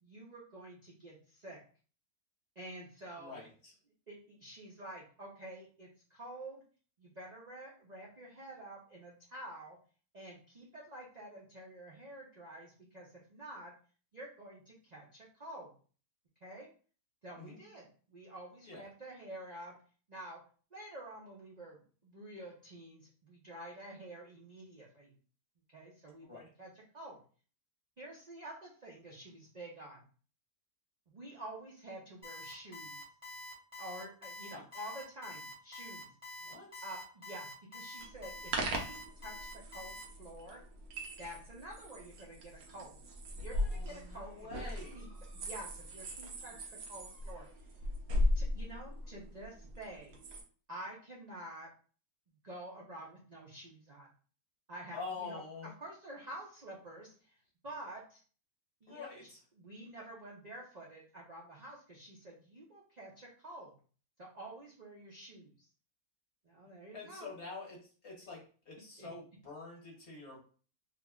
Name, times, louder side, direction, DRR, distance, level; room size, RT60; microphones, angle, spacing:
voice 1, 0.0-1.6 2.6-3.4 4.1-6.6 7.0-9.8 10.1-13.7 14.1-15.7 16.4-16.7 17.2-19.7 20.1-20.4 20.7-25.1 25.7-27.2 28.0-30.0 31.1-33.0 33.8-36.1 36.8-40.6 41.2-43.0 43.4-46.6 46.9-47.5 48.3-50.2 50.7-51.7 52.4-54.1 54.7-57.4 57.6-58.2 58.8-59.1 59.5-63.8 64.2-65.7 66.4-67.3 69.0-69.1, right 1 dB, 45° right, -4 dB, 0.5 m, -49 dB
voice 2, 3.2-3.7 17.4-17.6 18.6-18.8 26.2-26.5 34.4-34.6 36.4-36.8 43.5-45.0 54.9-55.7 58.9-59.4 66.9-70.4, left 4 dB, 45° left, -3 dB, 1.4 m, -47 dB
Alarm, 32.2-40.0, left 2 dB, 5° right, 1.0 m, -47 dB
sound 1, 38.0-50.4, left 1 dB, 75° right, 1.2 m, -38 dB
3.3 x 2.1 x 3.5 m, 0.40 s
omnidirectional pair, 1.6 m